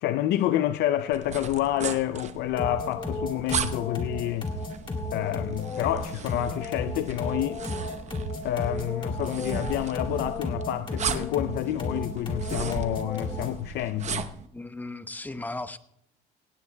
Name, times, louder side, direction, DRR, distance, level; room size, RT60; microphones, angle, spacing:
voice 1, 0.0-4.5 5.1-7.6 8.4-14.3, left 13 dB, 80° left, 0.5 m, -28 dB
sound 1, 1.1-14.5, right 7 dB, 45° right, 0.9 m, -37 dB
sound 2, 2.6-13.6, left 2 dB, 30° left, 2.7 m, -34 dB
voice 2, 14.5-15.8, left 2 dB, 10° left, 0.7 m, -36 dB
17.5 x 17.5 x 2.2 m
cardioid pair, 110°, 17 cm